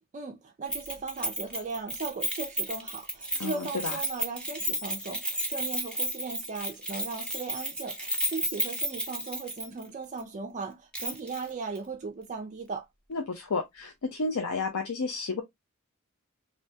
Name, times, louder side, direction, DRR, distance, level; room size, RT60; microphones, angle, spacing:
voice 1, 0.1-12.9, right 4 dB, 35° right, 0.4 m, -37 dB
Keys jangling, 0.7-9.9 10.2-10.3 10.9-11.5 11.8-11.9, right 1 dB, 5° left, 0.8 m, -33 dB
voice 2, 3.4-4.0 13.1-15.4, left 3 dB, 85° left, 0.6 m, -31 dB
3.3 x 2.7 x 2.6 m
head